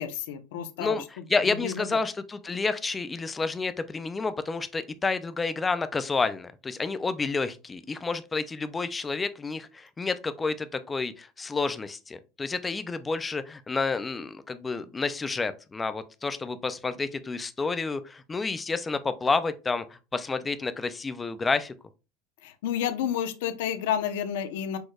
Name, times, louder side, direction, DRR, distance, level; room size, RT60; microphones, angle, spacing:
voice 1, 0.0-1.0 1.6-1.7 22.4-24.8, left 9 dB, 80° left, 0.8 m, -30 dB
voice 2, 0.8-21.7, left 4 dB, 10° left, 0.3 m, -30 dB
6.2 x 3.2 x 2.3 m
cardioid pair, 180°, 0 cm